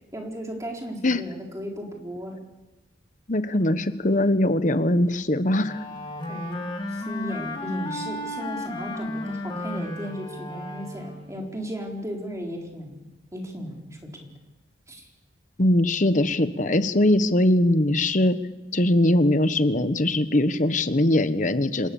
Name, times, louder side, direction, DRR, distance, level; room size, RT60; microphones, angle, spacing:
voice 1, 0.1-2.4 6.3-13.0 13.3-14.3 14.9-15.1, equal, 15° right, 0 dB, 4.2 m, -35 dB
voice 2, 3.3-5.8 15.6-18.4 18.7-21.9, left 1 dB, 40° left, 12 dB, 1.1 m, -21 dB
Wind instrument woodwind instrument, 5.6-11.4, left 1 dB, 25° left, 2.4 m, -33 dB
27.0 x 18.0 x 7.1 m, 1.1 s
head